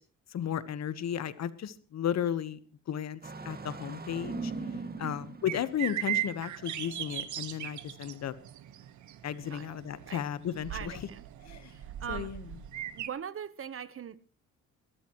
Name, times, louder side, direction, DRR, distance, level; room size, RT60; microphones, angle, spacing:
voice 1, 0.3-2.6 2.9-3.2 3.4-4.5 5.0-8.3 9.2-11.0 11.4-11.7 12.1-12.4, left 9 dB, 60° left, 1.2 m, -34 dB
Engine starting, 3.2-6.2, right 3 dB, 30° right, 2.1 m, -40 dB
sound 1, 5.5-13.1, right 11 dB, 70° right, 1.3 m, -38 dB
voice 2, 10.7-11.2 11.7-12.4 12.9-14.2, right 8 dB, 45° right, 1.1 m, -41 dB
21.5 x 13.5 x 3.0 m
cardioid pair, 90°, 30 cm